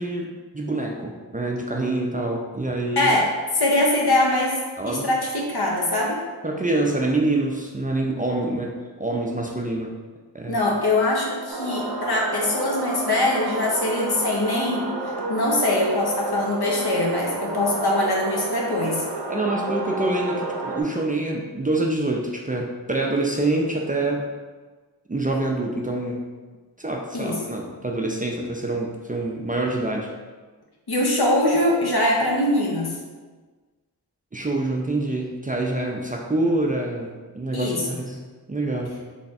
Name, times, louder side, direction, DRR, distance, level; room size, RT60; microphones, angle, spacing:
voice 1, 0.0-3.1 4.8-5.1 6.4-10.0 10.3-10.6 19.3-24.3 25.1-26.3 26.8-30.1 34.3-39.0, right 2 dB, 20° right, -1 dB, 0.4 m, -26 dB
voice 2, 3.0-3.3 3.5-4.6 4.9-6.2 10.5-14.9 15.3-19.0 27.1-27.4 30.9-32.9 37.5-37.8, left 1 dB, 70° left, -2 dB, 0.9 m, -22 dB
sound 1, 11.5-20.8, right 3 dB, 80° right, 0.6 m, -30 dB
3.3 x 2.4 x 4.0 m, 1.4 s
wide cardioid pair, 60°, 40 cm